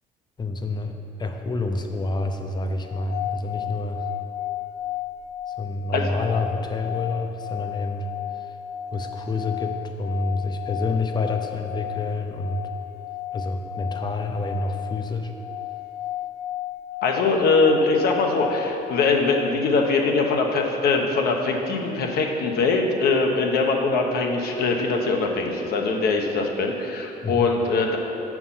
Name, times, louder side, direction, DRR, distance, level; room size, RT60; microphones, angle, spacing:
voice 1, 0.4-4.0 5.6-8.1 8.9-12.6 13.3-15.3 27.2-27.5, left 2 dB, 25° left, 5 dB, 0.6 m, -28 dB
sound 1, 2.8-20.0, left 13 dB, 85° left, 0.4 m, -34 dB
voice 2, 17.0-28.0, left 3 dB, 70° left, 2 dB, 0.9 m, -22 dB
6.8 x 4.7 x 5.5 m, 3.0 s
cardioid pair, 110°, 17 cm